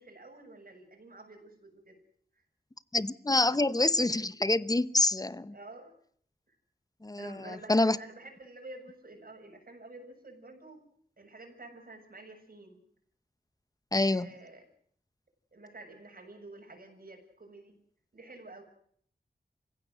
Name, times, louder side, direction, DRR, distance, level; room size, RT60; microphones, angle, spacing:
voice 1, 0.0-2.0 2.3-2.4 5.5-5.9 6.5-6.6 7.2-10.8 11.2-12.8 14.0-14.6 15.5-17.8 18.1-18.6, right 2 dB, 60° right, 7.4 m, -49 dB
voice 2, 2.9-5.5 7.0-8.0 13.9-14.3, left 2 dB, 20° left, 1.0 m, -27 dB
28.0 x 16.0 x 7.9 m
wide cardioid pair, 85°, 17 cm